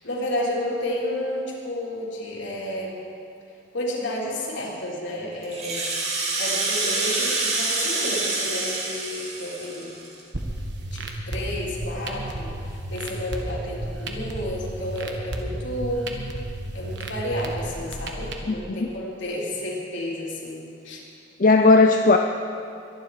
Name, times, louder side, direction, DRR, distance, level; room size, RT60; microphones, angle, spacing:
voice 1, 0.0-3.0 3.7-5.8 6.4-9.9 10.9-16.0 16.7-21.0, left 1 dB, 70° left, -5 dB, 3.6 m, -31 dB
Rattle (instrument), 5.4-10.2, right 3 dB, 35° right, 2.3 m, -27 dB
sound 1, 10.3-18.3, right 1 dB, 60° right, 1.5 m, -33 dB
voice 2, 18.5-18.9 21.4-22.2, left 3 dB, 45° left, 4 dB, 0.5 m, -16 dB
23.0 x 10.5 x 4.9 m, 2.6 s
head